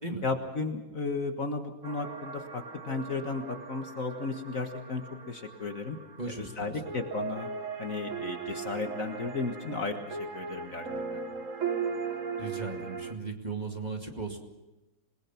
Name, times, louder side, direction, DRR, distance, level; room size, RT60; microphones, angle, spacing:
voice 1, 0.2-6.0 6.3-7.5 7.8-10.9 11.1-11.2, left 3 dB, 50° left, 5 dB, 1.8 m, -34 dB
sound 1, 1.8-13.1, right 5 dB, 45° right, 1.7 m, -38 dB
voice 2, 6.2-6.7 12.4-14.4, right 4 dB, 25° right, 2 dB, 2.3 m, -37 dB
27.5 x 20.0 x 5.9 m, 1.0 s
omnidirectional pair, 1.9 m